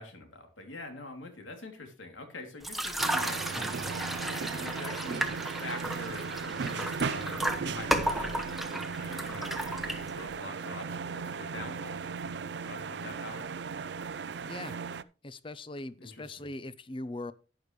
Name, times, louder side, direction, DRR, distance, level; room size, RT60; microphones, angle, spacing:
voice 1, 0.0-3.4 4.4-12.0 12.6-13.5 16.0-16.4, left 2 dB, 85° left, 2.9 m, -45 dB
sound 1, 2.6-10.4, right 1 dB, ahead, 0.9 m, -34 dB
sound 2, 3.0-15.0, right 5 dB, 60° right, 0.4 m, -37 dB
voice 2, 14.4-14.8 15.2-17.3, left 2 dB, 25° left, 0.6 m, -40 dB
12.0 x 9.9 x 3.2 m
head